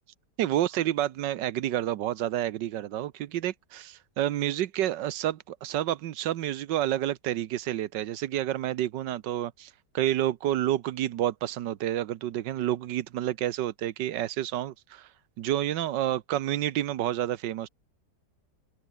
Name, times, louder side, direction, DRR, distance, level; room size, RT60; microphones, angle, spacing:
voice 1, 0.4-15.1 15.4-17.7, right 12 dB, 90° right, 1.5 m, -29 dB
omnidirectional pair, 1.8 m